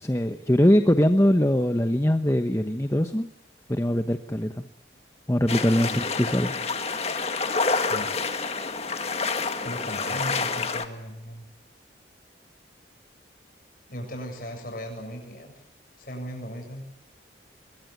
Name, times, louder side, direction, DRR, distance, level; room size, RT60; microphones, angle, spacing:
voice 1, 0.0-3.3 3.7-4.7 5.3-6.5, equal, 15° left, 9 dB, 0.9 m, -22 dB
sound 1, 5.5-10.9, left 4 dB, 35° left, 1.8 m, -28 dB
voice 2, 9.6-11.5 13.9-15.6 16.0-16.8, equal, 50° left, 2 dB, 7.9 m, -37 dB
24.5 x 22.5 x 9.4 m, 0.78 s
head